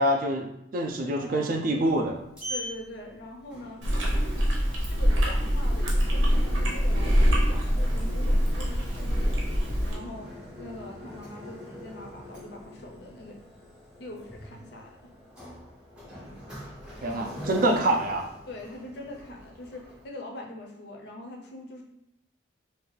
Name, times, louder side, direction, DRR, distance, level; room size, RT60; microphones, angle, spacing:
voice 1, 0.0-2.1 17.0-18.3, right 1 dB, 45° right, 4 dB, 0.3 m, -26 dB
voice 2, 0.9-1.9 2.5-3.9 4.9-9.4 9.8-10.3 10.6-13.4 14.0-15.1 17.0-17.2 18.5-21.8, left 1 dB, 55° left, 1 dB, 0.5 m, -42 dB
Sliding door, 1.8-20.0, left 1 dB, 5° right, 0.6 m, -43 dB
Chewing mastication, 3.8-9.9, equal, 85° right, 0.7 m, -24 dB
2.5 x 2.3 x 3.1 m, 0.83 s
head